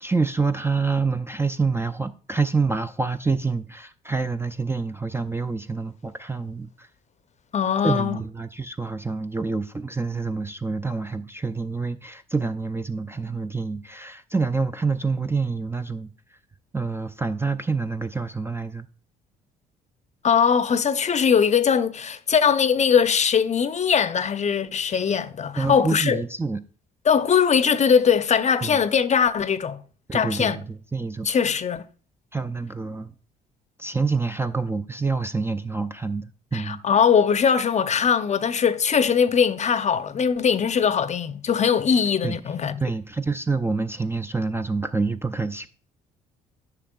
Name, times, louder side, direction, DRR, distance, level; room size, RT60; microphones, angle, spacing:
voice 1, 0.0-6.9 7.8-16.1 16.7-18.9 25.6-26.6 28.6-28.8 30.1-31.3 32.3-33.1 33.8-36.8 42.2-42.3 42.8-45.7, right 4 dB, 10° right, 0.4 m, -27 dB
voice 2, 7.5-8.2 20.2-26.2 27.1-29.8 30.1-30.6 31.2-31.8 36.5-42.8, left 7 dB, 35° left, 0.6 m, -21 dB
10.0 x 5.8 x 2.3 m
hypercardioid pair, 55°, 20 cm